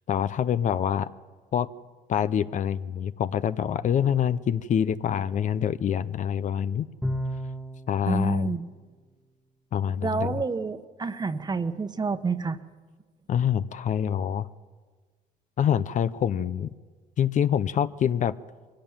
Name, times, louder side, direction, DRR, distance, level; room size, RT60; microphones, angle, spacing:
voice 1, 0.1-1.1 1.5-1.7 2.1-6.9 7.9-8.5 9.7-10.4 13.3-14.5 15.6-16.7 17.2-18.3, left 9 dB, 45° left, 14 dB, 0.6 m, -25 dB
Bowed string instrument, 7.0-7.9, equal, ahead, 1.3 m, -30 dB
voice 2, 8.1-8.7 10.0-12.6, right 4 dB, 25° right, 10 dB, 1.2 m, -28 dB
22.5 x 16.5 x 8.9 m, 1.4 s
cardioid pair, 110°, 17 cm